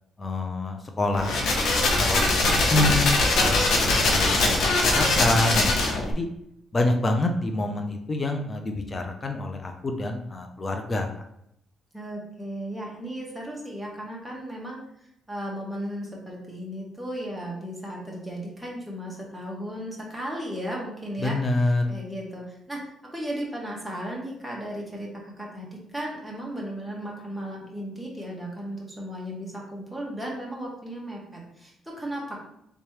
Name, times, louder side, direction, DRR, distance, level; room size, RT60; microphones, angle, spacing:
voice 1, 0.2-1.4 1.7-2.2 2.7-6.3 6.7-11.1 21.2-21.9, left 2 dB, 30° left, 4 dB, 0.5 m, -27 dB
sound 1, 1.1-6.1, left 2 dB, 70° left, 0.8 m, -22 dB
voice 2, 2.0-2.9 11.9-14.8 15.3-21.4 21.9-32.4, equal, ahead, -4 dB, 1.1 m, -35 dB
3.3 x 3.1 x 3.1 m, 0.76 s
cardioid pair, 90°, 0 cm